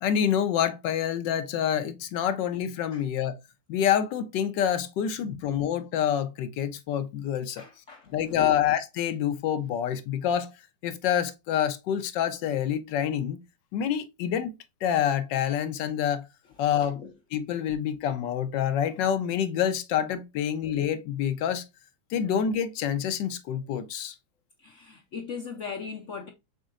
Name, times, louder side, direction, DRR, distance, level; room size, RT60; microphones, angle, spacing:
voice 1, 0.0-3.4 3.7-7.6 8.1-10.5 10.8-13.4 13.7-14.5 14.8-16.3 16.6-17.0 17.3-21.6 22.1-24.1, left 9 dB, 80° left, 1.3 m, -27 dB
voice 2, 7.6-8.6 17.0-17.1 22.2-22.3 24.6-26.3, left 6 dB, 60° left, 0.8 m, -39 dB
5.2 x 3.6 x 2.4 m
omnidirectional pair, 2.0 m